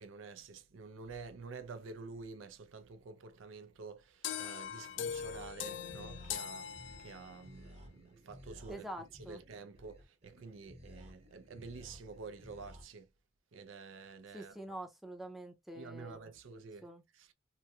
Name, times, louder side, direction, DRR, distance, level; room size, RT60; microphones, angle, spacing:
voice 1, 0.0-8.9 9.2-13.1 13.5-14.6 15.7-16.9 17.1-17.3, right 4 dB, 90° right, 0.5 m, -49 dB
sound 1, 4.2-7.5, left 8 dB, 65° left, 0.4 m, -41 dB
sound 2, 4.6-12.8, equal, 35° right, 0.9 m, -56 dB
voice 2, 8.7-9.4 14.3-16.2 16.8-17.0, right 1 dB, ahead, 0.5 m, -46 dB
2.9 x 2.6 x 2.3 m
head